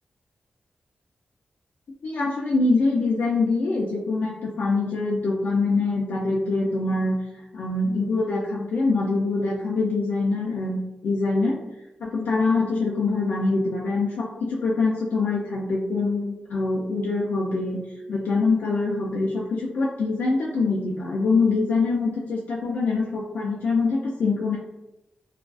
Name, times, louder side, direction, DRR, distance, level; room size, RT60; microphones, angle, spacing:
voice 1, 2.0-7.2 7.5-11.6 12.0-17.8 18.1-24.6, left 3 dB, 80° left, -4 dB, 0.3 m, -24 dB
2.3 x 2.2 x 2.3 m, 0.94 s
wide cardioid pair, 170°, 3 cm